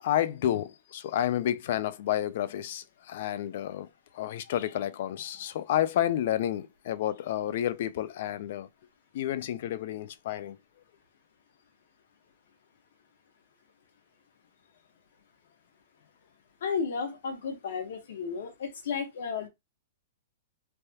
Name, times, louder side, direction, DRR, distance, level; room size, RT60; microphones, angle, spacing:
voice 1, 0.0-3.9 4.1-8.7 9.1-10.6, left 11 dB, 55° left, 0.3 m, -30 dB
voice 2, 16.6-19.5, left 6 dB, 70° left, 1.0 m, -33 dB
3.3 x 2.3 x 2.8 m
hypercardioid pair, 160°, 0 cm